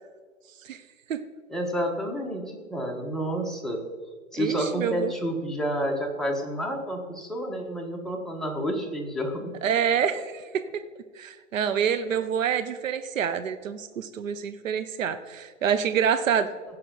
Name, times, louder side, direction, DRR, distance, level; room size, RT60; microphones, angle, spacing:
voice 1, 1.5-3.8 4.3-9.5, equal, ahead, 0 dB, 1.2 m, -29 dB
voice 2, 4.4-5.1 9.6-10.8 11.2-16.5, right 8 dB, 75° right, 10 dB, 0.7 m, -27 dB
16.0 x 5.7 x 3.9 m, 1.5 s
hypercardioid pair, 115°, 40 cm